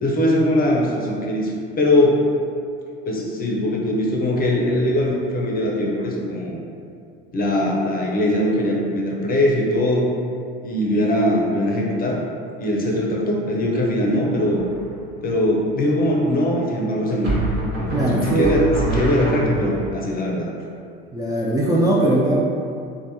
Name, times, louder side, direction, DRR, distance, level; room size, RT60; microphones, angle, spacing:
voice 1, 0.0-2.2 3.1-6.6 7.3-10.1 10.6-12.2 12.6-14.6 15.2-17.4 17.8-20.5, left 1 dB, 30° left, -2 dB, 0.6 m, -21 dB
sound 1, 14.6-15.1 17.2-19.9, right 2 dB, 50° right, 1.1 m, -25 dB
voice 2, 17.9-18.5 21.1-22.4, right 1 dB, 10° right, -6 dB, 0.3 m, -19 dB
3.2 x 2.1 x 2.7 m, 2.4 s
hypercardioid pair, 70°, 29 cm